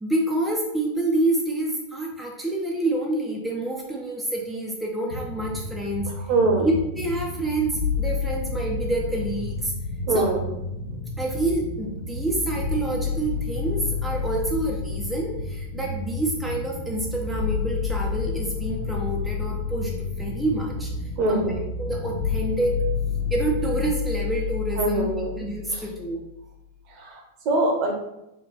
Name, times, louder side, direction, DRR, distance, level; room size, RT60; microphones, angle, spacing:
voice 1, 0.0-6.1 6.6-9.7 10.1-10.3 11.2-20.9 21.3-22.9 23.3-25.1 25.4-26.2, right 2 dB, 5° right, -3 dB, 0.5 m, -27 dB
sound 1, 5.1-23.9, left 1 dB, 75° left, 0.8 m, -34 dB
voice 2, 6.3-6.7 10.1-10.4 21.2-21.6 24.8-25.3 25.7-25.8 26.9-27.9, right 2 dB, 40° right, 1 dB, 0.8 m, -23 dB
sound 2, 7.8-11.8 12.6-26.6, left 8 dB, 45° left, 0.6 m, -31 dB
3.2 x 2.4 x 3.8 m, 0.88 s
figure-of-eight pair, 90°, 0 cm